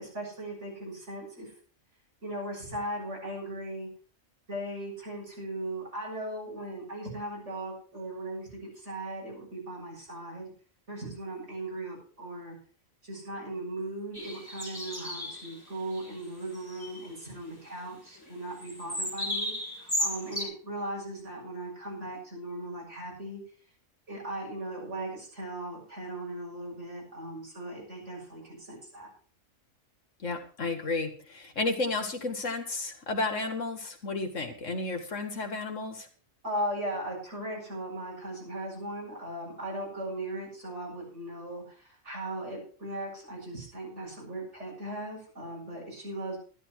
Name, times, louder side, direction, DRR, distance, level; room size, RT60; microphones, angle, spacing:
voice 1, 0.0-1.5 2.2-3.9 4.5-10.5 10.9-12.6 13.0-23.4 24.1-29.1 36.4-46.4, right 1 dB, 65° right, -3 dB, 7.9 m, -38 dB
sound 1, 14.1-15.6 15.9-16.1 16.4-17.1 18.6-20.4, equal, 15° left, 2.8 m, -34 dB
voice 2, 30.2-36.1, left 3 dB, 70° left, 6 dB, 2.2 m, -32 dB
12.5 x 12.0 x 4.7 m, 0.41 s
omnidirectional pair, 1.3 m